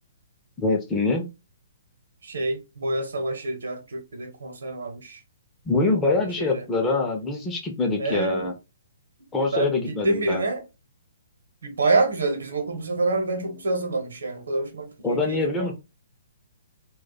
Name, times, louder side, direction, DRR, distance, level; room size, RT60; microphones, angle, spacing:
voice 1, 0.6-1.3 5.7-8.5 9.3-10.4 15.0-15.7, left 3 dB, 10° left, 0.6 m, -24 dB
voice 2, 2.2-5.2 5.9-6.7 8.0-8.5 9.5-10.6 11.6-15.7, right 3 dB, 65° right, 0.9 m, -27 dB
2.4 x 2.2 x 3.9 m
figure-of-eight pair, 120°, 0 cm